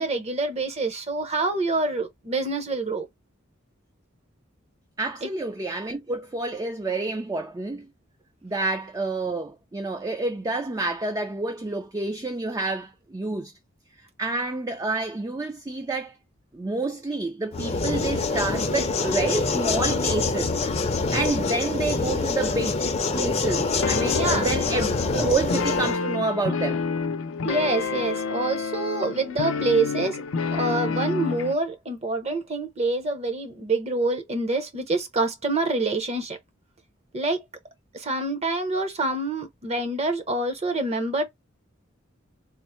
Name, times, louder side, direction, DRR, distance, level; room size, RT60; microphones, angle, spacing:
voice 1, 0.0-3.1 5.2-5.3 24.1-24.9 27.4-30.2 30.5-36.4 37.1-37.4 37.9-41.2, right 2 dB, 35° right, 0.8 m, -26 dB
voice 2, 5.0-7.9 8.4-13.5 14.2-16.2 16.5-20.5 21.1-22.8 23.1-26.8, right 2 dB, 20° right, 0.4 m, -28 dB
sound 1, 17.5-26.0, left 3 dB, 30° left, 0.5 m, -25 dB
sound 2, 23.8-31.5, left 5 dB, 80° left, 0.5 m, -29 dB
3.5 x 2.1 x 4.3 m
head